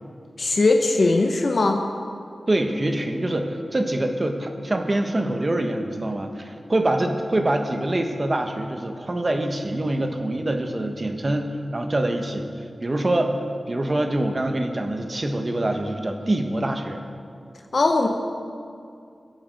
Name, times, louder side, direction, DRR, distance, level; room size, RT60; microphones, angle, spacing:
voice 1, 0.4-1.8 17.7-18.1, left 3 dB, 55° left, 3 dB, 0.9 m, -19 dB
voice 2, 2.5-13.3 13.7-17.0, right 1 dB, 30° right, 5 dB, 1.2 m, -25 dB
22.0 x 8.7 x 5.3 m, 2.4 s
wide cardioid pair, 125°, 0 cm